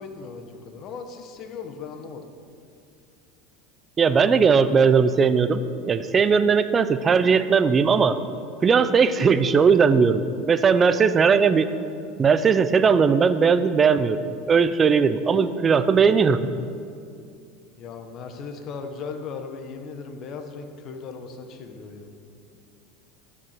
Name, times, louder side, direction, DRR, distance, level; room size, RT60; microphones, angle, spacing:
voice 1, 0.0-2.2 17.8-22.1, left 5 dB, 40° left, 6 dB, 1.4 m, -37 dB
voice 2, 4.0-5.6 5.9-8.2 8.6-11.7 12.2-14.2 14.5-16.4, right 5 dB, 25° right, 12 dB, 0.6 m, -18 dB
12.0 x 8.2 x 7.5 m, 2.4 s
supercardioid pair, 135°, 0 cm